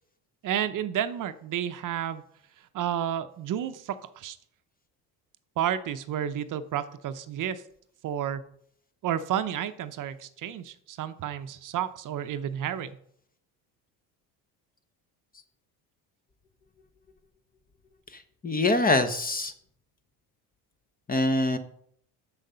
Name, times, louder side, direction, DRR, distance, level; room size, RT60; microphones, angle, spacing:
voice 1, 0.4-2.2 2.7-4.4 5.6-7.6 8.0-8.4 9.0-12.9, right 10 dB, 50° right, 11 dB, 0.7 m, -31 dB
voice 2, 18.1-19.5 21.1-21.6, left 2 dB, 20° left, 11 dB, 0.9 m, -24 dB
7.1 x 6.6 x 5.5 m, 0.67 s
cardioid pair, 105°, 41 cm